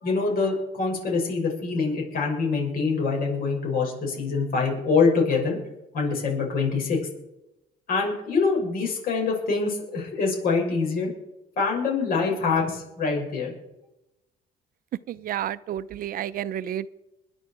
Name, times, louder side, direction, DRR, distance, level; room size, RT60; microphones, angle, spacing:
voice 1, 0.0-5.6 5.9-7.0 7.9-11.1 11.6-13.5, left 4 dB, 60° left, 6.6 m, -25 dB
voice 2, 15.1-16.9, right 11 dB, 60° right, 0.6 m, -31 dB
21.5 x 9.9 x 4.8 m
cardioid pair, 110°, 17 cm